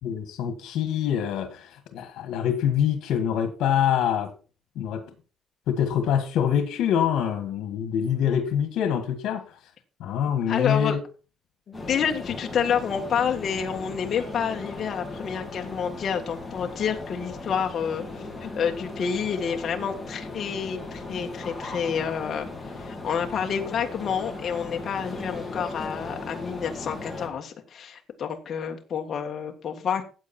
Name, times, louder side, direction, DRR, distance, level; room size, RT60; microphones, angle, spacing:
voice 1, 0.0-4.3 4.7-5.0 5.7-9.4 10.0-11.0, left 9 dB, 80° left, 1.8 m, -25 dB
voice 2, 10.5-11.0 11.7-18.0 18.4-30.0, left 7 dB, 40° left, 1.7 m, -29 dB
sound 1, 11.7-27.3, left 2 dB, 10° left, 2.9 m, -37 dB
14.5 x 8.4 x 4.4 m
cardioid pair, 160°, 0 cm